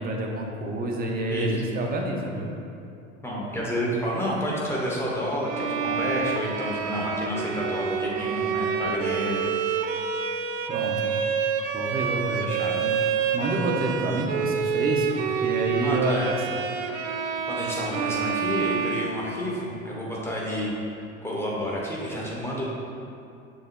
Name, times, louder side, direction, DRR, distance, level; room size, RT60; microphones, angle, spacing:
voice 1, 0.0-2.5 10.7-11.1 11.7-12.4 12.8-16.4, right 1 dB, 20° right, 0 dB, 0.8 m, -28 dB
voice 2, 3.2-9.4 12.4-12.8 15.8-16.3 17.5-20.7 21.2-22.7, equal, 5° left, -5 dB, 1.5 m, -30 dB
Bowed string instrument, 5.4-19.7, right 6 dB, 40° right, 0.5 m, -28 dB
7.6 x 6.4 x 2.2 m, 2.6 s
figure-of-eight pair, 75°, 40 cm